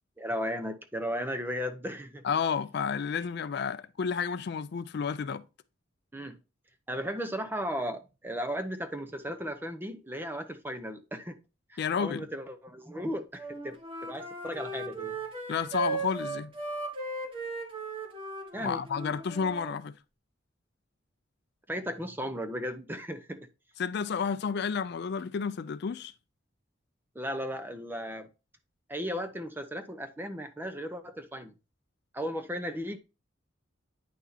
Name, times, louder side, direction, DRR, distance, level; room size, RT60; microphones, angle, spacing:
voice 1, 0.2-2.2 6.1-6.4 6.9-11.4 11.7-15.1 18.5-18.8 21.7-23.4 27.1-28.3 28.9-31.5 32.1-33.0, equal, 10° right, 0.7 m, -35 dB
voice 2, 2.2-5.4 11.8-12.3 15.5-16.5 18.6-19.9 23.8-26.1, left 6 dB, 55° left, 0.4 m, -31 dB
Wind instrument woodwind instrument, 13.4-19.8, right 3 dB, 25° right, 1.6 m, -37 dB
9.2 x 6.1 x 2.8 m
head